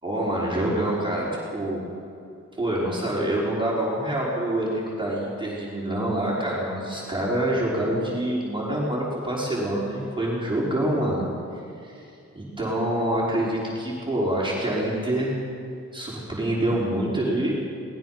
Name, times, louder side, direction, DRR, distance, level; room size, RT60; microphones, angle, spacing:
voice 1, 0.0-1.3 1.5-1.8 2.6-11.2 11.5-12.1 12.3-15.4 15.9-17.6, right 1 dB, 15° right, -6 dB, 5.2 m, -26 dB
22.0 x 20.0 x 6.0 m, 2.5 s
wide cardioid pair, 105°, 29 cm